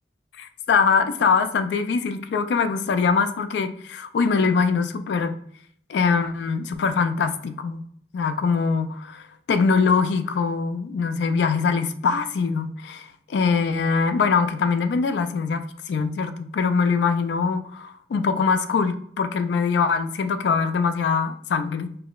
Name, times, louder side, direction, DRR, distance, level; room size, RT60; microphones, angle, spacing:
voice 1, 0.4-5.4 5.9-7.8 8.1-22.0, left 5 dB, 75° left, 9 dB, 0.3 m, -23 dB
4.6 x 2.0 x 2.3 m, 0.63 s
head